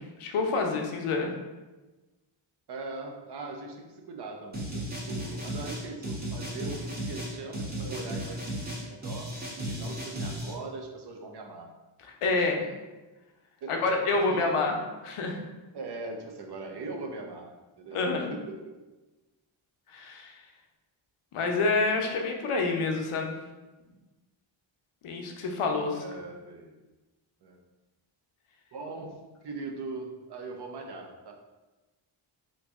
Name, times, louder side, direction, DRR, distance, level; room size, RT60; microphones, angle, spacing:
voice 1, 0.0-1.3 12.2-12.6 13.7-14.8 15.0-15.4 17.9-18.3 19.9-20.4 21.3-23.4 25.0-26.0, left 3 dB, 90° left, 2 dB, 0.7 m, -28 dB
voice 2, 2.7-9.3 9.7-11.7 12.3-12.5 13.6-14.0 14.3-14.8 15.7-18.8 25.9-26.8 27.4-27.6 28.7-31.3, right 3 dB, 55° right, 3 dB, 0.6 m, -41 dB
sound 1, 4.5-10.5, right 1 dB, 20° right, 0.9 m, -35 dB
3.1 x 2.6 x 3.4 m, 1.1 s
wide cardioid pair, 100°, 49 cm